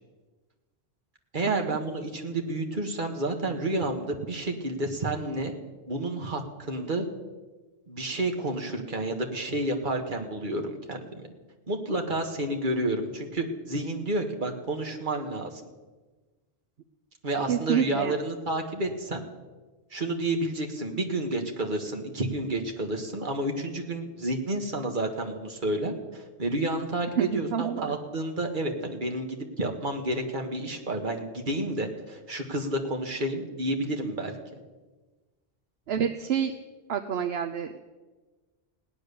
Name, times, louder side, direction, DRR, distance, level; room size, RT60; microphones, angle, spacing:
voice 1, 1.3-5.5 5.9-7.1 7.9-11.3 11.7-15.5 17.2-19.2 19.9-34.4, right 1 dB, 50° right, 3 dB, 1.7 m, -30 dB
voice 2, 17.5-18.1 27.1-28.0 35.9-36.5 36.9-37.8, right 8 dB, 75° right, 7 dB, 0.9 m, -28 dB
17.0 x 10.0 x 6.8 m, 1.3 s
omnidirectional pair, 1.1 m